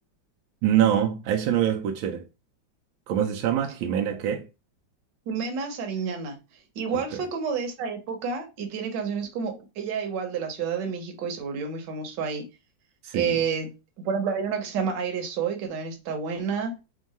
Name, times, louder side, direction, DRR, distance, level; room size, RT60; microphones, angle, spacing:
voice 1, 0.6-2.3 3.1-4.4 6.9-7.2 13.0-13.4, right 10 dB, 90° right, 1.4 m, -25 dB
voice 2, 5.3-6.4 6.8-12.4 13.1-13.7 14.0-16.7, right 6 dB, 70° right, 1.4 m, -29 dB
3.6 x 2.3 x 4.0 m
omnidirectional pair, 2.1 m